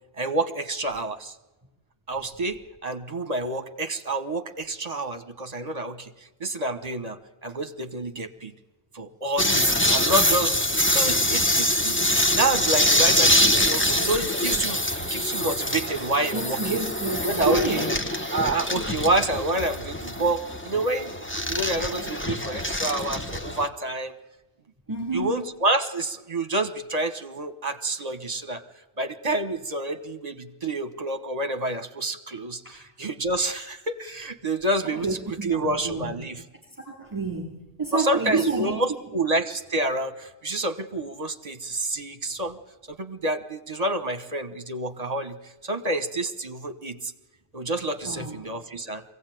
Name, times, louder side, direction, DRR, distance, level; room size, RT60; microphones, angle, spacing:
voice 1, 0.2-1.3 2.1-6.1 6.4-8.5 8.9-14.8 15.1-16.8 17.2-17.9 18.3-21.1 21.5-24.1 25.1-28.6 29.0-36.4 37.9-42.6 42.9-45.4 45.6-47.1 47.5-49.0, right 2 dB, 40° right, 10 dB, 1.3 m, -28 dB
sound 1, 9.4-23.7, left 1 dB, 10° left, 1.1 m, -24 dB
voice 2, 16.3-18.0 24.9-25.4 32.6-32.8 35.0-36.1 36.8-37.5 37.8-38.8 48.1-48.4, right 3 dB, 20° right, 2 dB, 3.2 m, -28 dB
23.0 x 16.5 x 9.2 m, 1.1 s
omnidirectional pair, 1.1 m